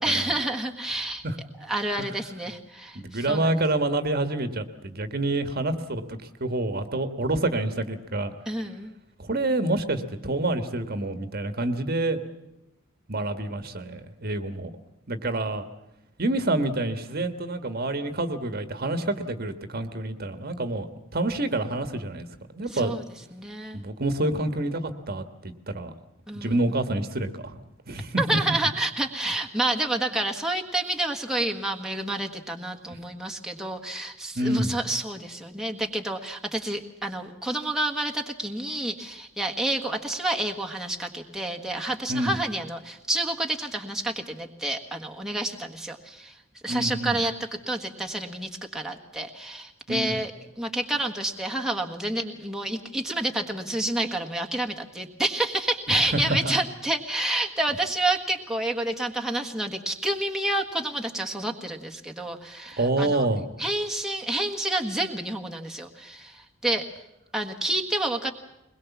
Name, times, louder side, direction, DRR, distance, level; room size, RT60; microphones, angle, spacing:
voice 1, 0.0-1.2 1.6-3.5 8.5-8.9 22.7-23.0 23.3-23.8 26.3-26.6 28.2-46.4 46.6-47.3 47.7-50.3 50.6-63.2 63.6-66.9 67.3-68.3, right 1 dB, 5° right, 1 dB, 1.6 m, -29 dB
voice 2, 2.9-8.3 9.2-12.2 13.1-14.7 15.1-15.6 16.2-20.9 21.1-22.3 22.5-22.9 23.7-25.9 26.3-27.6 27.9-28.2 32.9-33.0 34.3-34.8 42.1-42.4 46.7-47.2 49.9-50.2 55.9-56.5 62.8-63.4, right 2 dB, 50° right, 9 dB, 1.5 m, -27 dB
22.0 x 21.0 x 7.2 m, 0.91 s
head